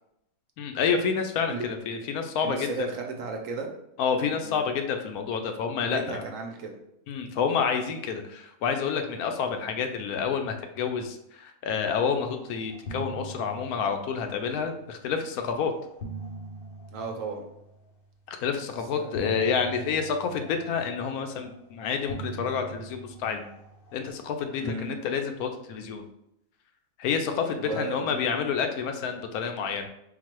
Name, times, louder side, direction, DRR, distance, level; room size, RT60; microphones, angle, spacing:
voice 1, 0.6-2.9 4.0-6.2 7.1-15.7 18.3-23.5 23.9-26.0 27.0-29.9, left 6 dB, 80° left, 6 dB, 1.0 m, -29 dB
voice 2, 2.4-3.7 4.3-4.6 5.8-6.8 16.9-17.4 18.9-19.2 24.6-24.9 27.6-28.2, right 4 dB, 65° right, 3 dB, 1.0 m, -35 dB
sound 1, 12.2-12.4 12.7-15.0 15.7-18.1 19.1-21.6 22.1-24.7, right 2 dB, 50° left, 0.7 m, -42 dB
3.9 x 2.3 x 4.4 m, 0.79 s
omnidirectional pair, 1.6 m